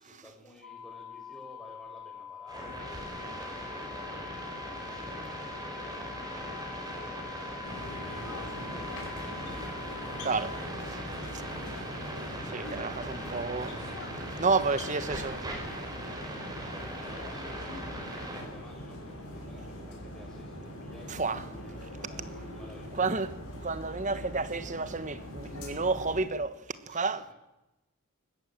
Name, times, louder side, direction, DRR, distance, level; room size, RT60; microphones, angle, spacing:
voice 1, 0.0-4.3 4.7-10.2 10.8-11.9 16.6-21.2 21.5-23.1 26.9-27.3, equal, ahead, 6.4 m, -55 dB
sound 1, 0.6-10.6, left 8 dB, 70° left, 4.2 m, -45 dB
sound 2, 2.5-18.4, right 1 dB, 20° right, 4.6 m, -39 dB
sound 3, 7.6-26.2, equal, 85° left, 6.3 m, -42 dB
voice 2, 10.2-10.6 12.5-13.8 14.4-15.4 21.1-21.4 23.0-23.3 23.6-26.6 26.9-27.2, right 4 dB, 35° right, 1.2 m, -30 dB
19.5 x 15.0 x 9.1 m
head